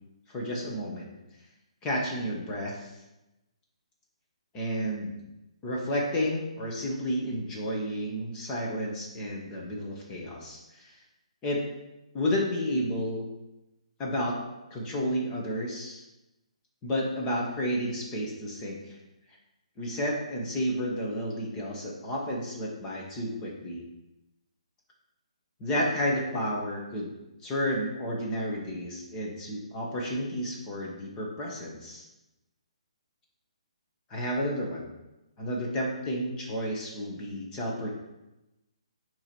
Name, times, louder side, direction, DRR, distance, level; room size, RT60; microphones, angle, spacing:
voice 1, 0.3-1.1 1.8-2.7 4.5-5.2 5.6-10.9 11.4-11.6 12.1-13.3 14.0-14.3 14.7-16.0 16.8-19.0 19.8-23.8 25.6-27.1 27.4-32.0 34.1-34.9 35.4-37.9, equal, 20° left, -2 dB, 1.4 m, -31 dB
9.5 x 3.2 x 4.5 m, 0.98 s
hypercardioid pair, 155°, 4 cm